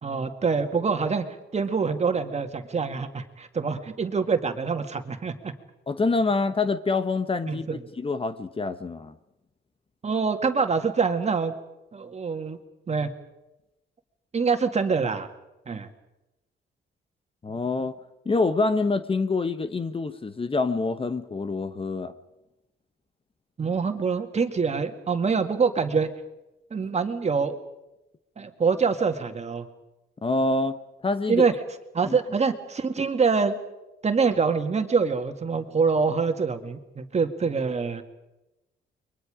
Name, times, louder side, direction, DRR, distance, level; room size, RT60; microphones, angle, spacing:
voice 1, 0.0-1.3 1.5-5.5 7.5-7.8 10.0-11.5 11.9-12.6 12.9-13.1 14.3-15.3 15.7-15.9 23.6-26.1 26.7-27.5 28.4-29.7 31.3-31.5 31.9-33.5 34.0-38.0, right 5 dB, 35° right, 6 dB, 2.1 m, -25 dB
voice 2, 5.9-9.1 17.4-18.0 18.2-22.1 30.2-30.8 31.0-31.5 32.1-32.2, left 3 dB, 25° left, 11 dB, 1.1 m, -26 dB
29.5 x 23.0 x 5.1 m, 0.96 s
cardioid pair, 90°, 20 cm